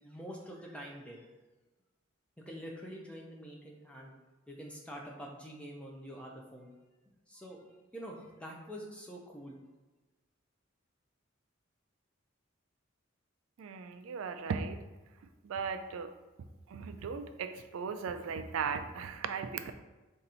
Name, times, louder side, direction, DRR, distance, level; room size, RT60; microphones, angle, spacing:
voice 1, 0.0-1.3 2.5-4.1 4.5-6.7 7.3-7.7 7.9-9.6, equal, 5° left, -2 dB, 0.6 m, -46 dB
voice 2, 13.6-14.8 15.4-16.1 16.7-19.7, right 5 dB, 75° right, 9 dB, 0.3 m, -37 dB
3.9 x 2.6 x 4.2 m, 1.2 s
head